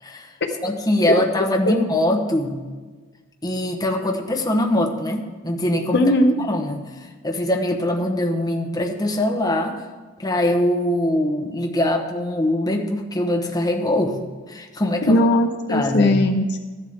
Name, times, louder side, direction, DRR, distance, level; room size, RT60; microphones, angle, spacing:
voice 1, 0.0-0.4 0.6-2.6 3.4-6.1 6.4-9.8 10.2-14.2 14.5-15.3 15.7-16.2, left 1 dB, 20° left, 2 dB, 1.0 m, -22 dB
voice 2, 5.9-6.3 15.1-16.6, left 1 dB, 55° left, 6 dB, 0.7 m, -18 dB
14.5 x 11.0 x 3.6 m, 1.4 s
head